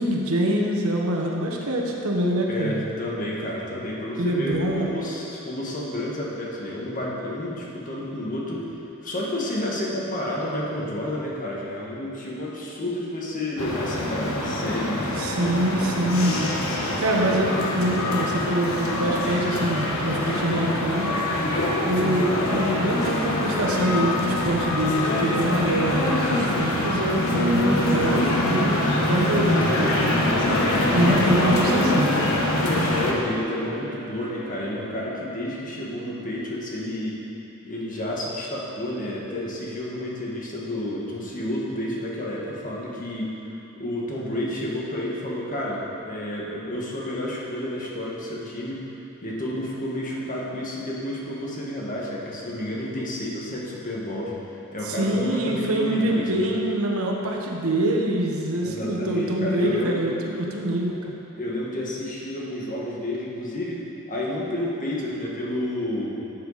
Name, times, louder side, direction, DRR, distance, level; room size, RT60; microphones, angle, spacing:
voice 1, 0.0-2.7 4.2-4.9 15.1-16.4 17.0-21.1 21.8-30.0 30.9-32.3 54.8-61.1, right 1 dB, 75° right, 0 dB, 1.2 m, -25 dB
voice 2, 2.5-8.6 9.0-15.1 29.6-31.2 32.6-37.2 37.6-43.3 43.8-48.8 49.2-54.3 54.7-56.5 58.6-60.1 61.4-66.1, left 1 dB, 40° left, -4 dB, 1.7 m, -30 dB
sound 1, 13.6-33.1, left 1 dB, 70° left, 1.4 m, -24 dB
Wind instrument woodwind instrument, 28.4-36.1, right 1 dB, 45° right, 1.1 m, -39 dB
12.0 x 8.2 x 4.2 m, 2.9 s
head